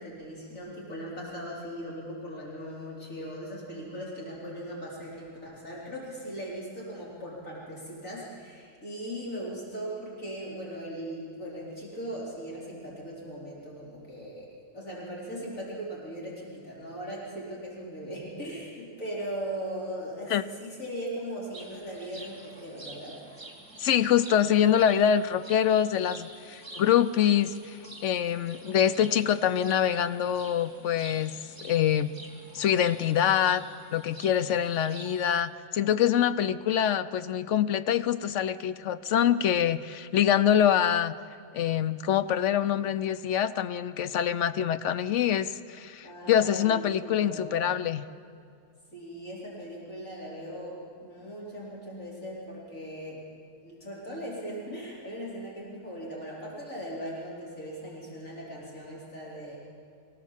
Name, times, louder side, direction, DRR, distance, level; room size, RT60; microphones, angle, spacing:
voice 1, 0.0-23.2 46.0-47.7 48.9-53.2 53.6-59.6, equal, 85° left, -5 dB, 4.4 m, -39 dB
sound 1, 21.5-35.4, right 1 dB, 15° right, 2.4 m, -48 dB
voice 2, 23.8-32.1 32.5-33.6 33.9-41.1 41.5-48.1, left 9 dB, 70° left, 13 dB, 1.0 m, -25 dB
24.5 x 16.5 x 7.4 m, 2.3 s
omnidirectional pair, 1.3 m